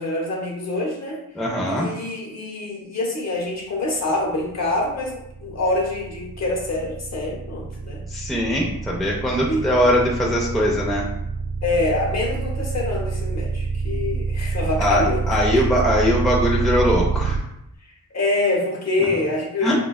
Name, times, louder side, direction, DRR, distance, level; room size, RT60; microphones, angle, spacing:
voice 1, 0.0-1.2 1.6-8.0 9.5-9.7 11.6-15.4 18.1-19.7, left 2 dB, 45° left, -2 dB, 0.8 m, -25 dB
voice 2, 1.4-1.9 8.1-11.1 14.8-17.4 19.6-19.7, equal, ahead, -3 dB, 0.4 m, -21 dB
sound 1, 4.1-17.4, right 4 dB, 80° right, 0.6 m, -26 dB
4.4 x 2.2 x 2.2 m, 0.80 s
wide cardioid pair, 140°, 36 cm